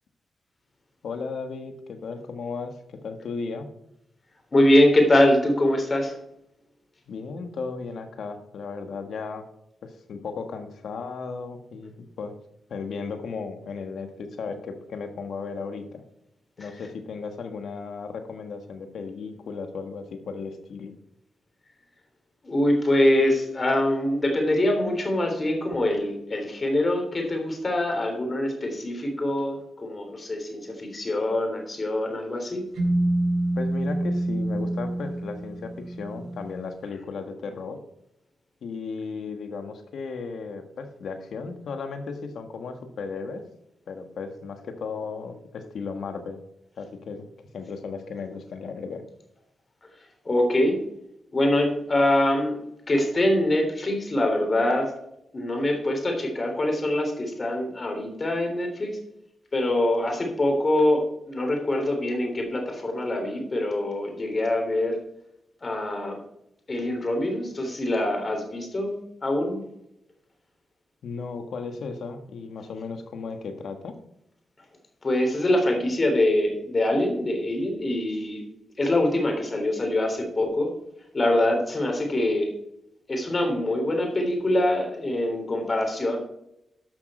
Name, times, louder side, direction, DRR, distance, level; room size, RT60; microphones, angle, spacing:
voice 1, 1.0-3.7 7.1-9.4 9.8-12.3 12.7-16.0 16.6-20.9 33.6-37.8 38.6-43.4 43.9-46.4 46.8-47.3 47.5-49.0 71.0-73.9, left 4 dB, 75° left, 7 dB, 1.5 m, -35 dB
voice 2, 4.5-6.1 22.4-32.6 50.3-50.8 51.3-52.6 52.9-54.9 55.3-59.0 59.5-65.0 65.6-66.2 66.7-69.6 75.0-78.4 78.8-80.7 81.1-82.5 83.1-86.2, left 1 dB, 40° left, 3 dB, 3.5 m, -24 dB
sound 1, 32.8-36.6, right 1 dB, 75° right, 3.8 m, -27 dB
11.5 x 6.2 x 4.4 m, 0.81 s
cardioid pair, 60°, 0 cm